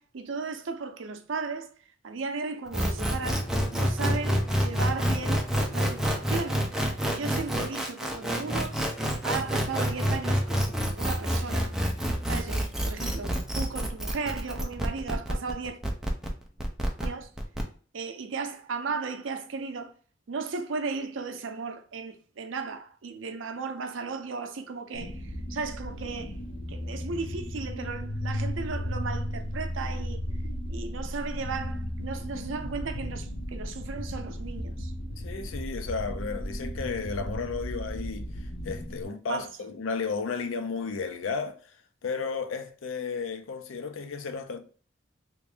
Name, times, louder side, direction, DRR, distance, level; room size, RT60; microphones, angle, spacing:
voice 1, 0.0-1.7 2.0-6.6 7.1-8.8 9.2-11.8 12.3-15.8 17.0-17.3 17.9-19.9 20.3-26.3 26.7-30.2 30.7-34.9 39.3-39.5, right 4 dB, 75° right, 0.5 m, -35 dB
sound 1, 2.7-17.6, equal, 5° right, 0.4 m, -28 dB
sound 2, 24.9-39.0, equal, 45° left, 0.6 m, -35 dB
voice 2, 35.2-38.3 38.6-41.6 42.0-44.6, left 5 dB, 85° left, 0.5 m, -33 dB
3.0 x 2.6 x 3.4 m
head